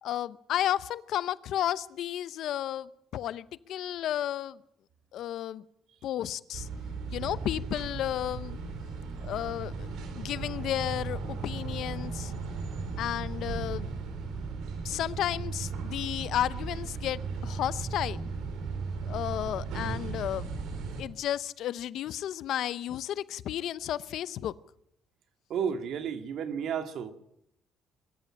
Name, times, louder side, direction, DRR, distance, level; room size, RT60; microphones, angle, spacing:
voice 1, 0.0-4.6 5.1-5.6 6.0-6.7 7.1-8.6 9.2-9.9 10.1-12.3 13.0-13.9 14.8-18.3 19.0-20.5 21.0-24.5, left 11 dB, 70° left, 17 dB, 0.7 m, -32 dB
sound 1, 6.5-21.0, right 4 dB, 85° right, 4.3 m, -36 dB
voice 2, 25.5-27.1, right 7 dB, 65° right, 8 dB, 2.0 m, -32 dB
22.5 x 13.5 x 8.9 m, 0.75 s
cardioid pair, 130°, 0 cm